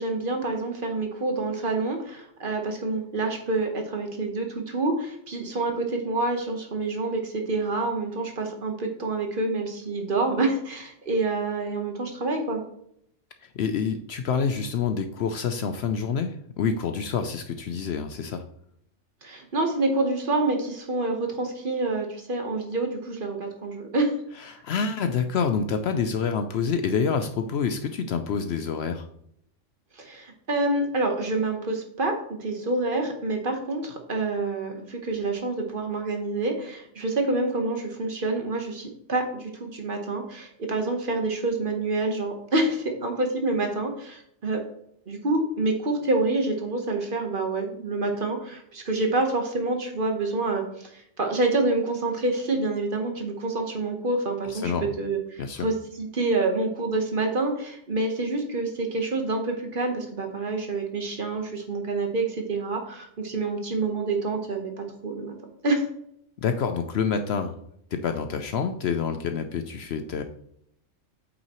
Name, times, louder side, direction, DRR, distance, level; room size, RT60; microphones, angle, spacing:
voice 1, 0.0-12.6 19.2-24.1 24.4-24.5 30.0-44.6 45.1-54.7 55.0-65.3 65.6-65.8, right 2 dB, 45° right, 3 dB, 1.2 m, -27 dB
voice 2, 13.4-18.4 24.4-29.1 54.4-54.9 55.4-55.7 66.4-67.5 67.9-70.2, left 6 dB, 65° left, 8 dB, 0.7 m, -27 dB
8.2 x 5.6 x 3.0 m, 0.72 s
omnidirectional pair, 1.3 m